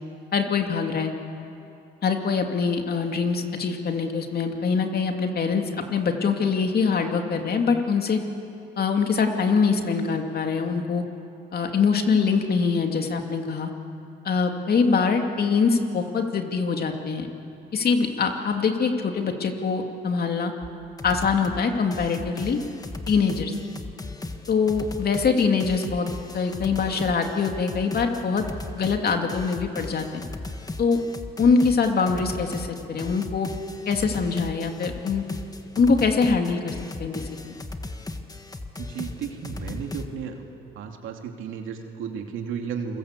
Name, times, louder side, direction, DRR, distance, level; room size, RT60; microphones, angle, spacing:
voice 1, 0.3-1.1 2.0-5.6 5.9-8.2 8.8-11.0 11.5-13.7 14.2-17.3 17.7-20.5 21.0-22.6 23.1-23.5 24.5-26.1 26.3-28.4 28.7-30.2 30.8-31.0 31.4-33.5 33.9-35.2 35.8-36.7 37.0-37.6, left 5 dB, 50° left, 4 dB, 2.7 m, -23 dB
sound 1, 20.6-20.7 21.0-21.6 21.9-40.1, left 2 dB, 20° left, 1.6 m, -36 dB
voice 2, 38.8-40.5 40.7-43.0, right 7 dB, 85° right, 3 dB, 2.6 m, -33 dB
28.0 x 22.0 x 8.3 m, 2.7 s
cardioid pair, 90°, 20 cm